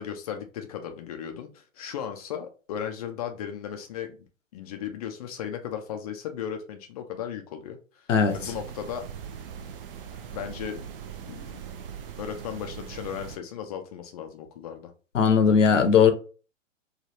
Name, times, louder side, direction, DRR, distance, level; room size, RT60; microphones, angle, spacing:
voice 1, 0.0-4.2 4.5-9.1 10.3-10.8 11.3-11.6 12.2-14.9, left 8 dB, 30° left, 0.4 m, -36 dB
sound 1, 8.3-13.4, right 8 dB, 45° right, 0.5 m, -40 dB
voice 2, 15.1-16.1, left 6 dB, 70° left, 0.8 m, -18 dB
3.2 x 2.3 x 2.7 m
figure-of-eight pair, 115°, 39 cm